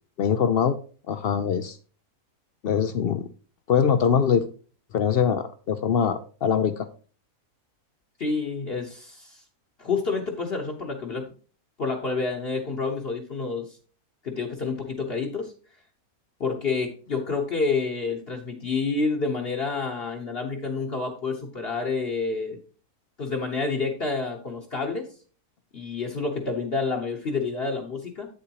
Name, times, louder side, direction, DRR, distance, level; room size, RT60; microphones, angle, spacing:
voice 1, 0.2-0.8 1.1-1.8 2.6-3.3 3.7-4.5 4.9-6.9, left 7 dB, 75° left, 11 dB, 0.5 m, -23 dB
voice 2, 8.2-9.4 9.8-11.3 11.8-13.8 14.2-15.5 16.4-22.6 23.2-25.1 25.7-28.3, left 4 dB, 45° left, 1 dB, 1.1 m, -28 dB
8.5 x 7.6 x 2.9 m, 0.39 s
omnidirectional pair, 1.5 m